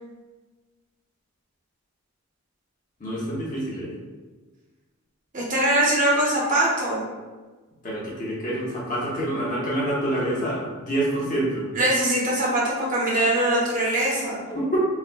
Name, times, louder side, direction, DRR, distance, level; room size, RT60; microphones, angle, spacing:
voice 1, 3.0-3.9 7.8-11.7 14.5-14.8, right 1 dB, 35° left, -5 dB, 0.6 m, -27 dB
voice 2, 5.3-7.0 11.7-14.4, right 1 dB, 35° right, -6 dB, 0.7 m, -22 dB
3.3 x 2.0 x 2.5 m, 1.3 s
head